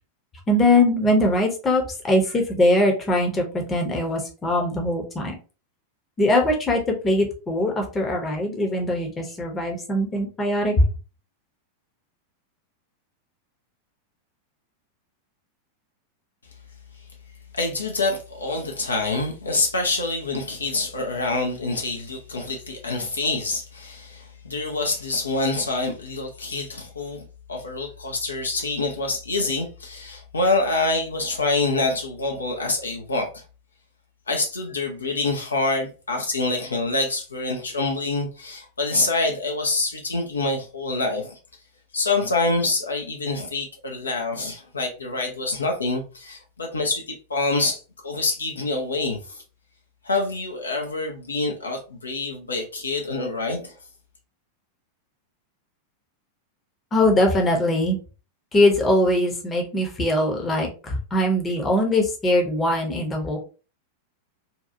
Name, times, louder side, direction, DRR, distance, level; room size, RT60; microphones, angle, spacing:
voice 1, 0.5-5.4 6.2-10.8 56.9-58.0 58.5-63.4, left 1 dB, 20° left, 0.8 m, -21 dB
voice 2, 17.5-33.4 34.3-41.4 41.9-49.4 50.0-53.7, left 3 dB, 75° left, 0.5 m, -26 dB
2.7 x 2.3 x 2.5 m
figure-of-eight pair, 90°, 0 cm